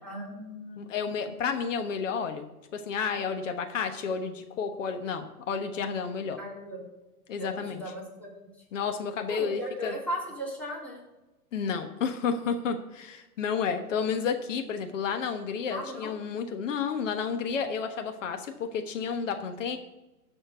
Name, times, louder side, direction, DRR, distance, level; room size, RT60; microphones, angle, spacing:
voice 1, 0.0-0.8 6.4-6.9 7.4-8.5 9.3-11.0 15.7-16.1, equal, 5° left, -6 dB, 3.6 m, -37 dB
voice 2, 0.8-2.4 2.7-6.4 7.3-7.8 8.7-9.9 11.5-19.8, left 6 dB, 50° left, 7 dB, 1.2 m, -31 dB
13.0 x 4.4 x 7.9 m, 1.0 s
hypercardioid pair, 140°, 46 cm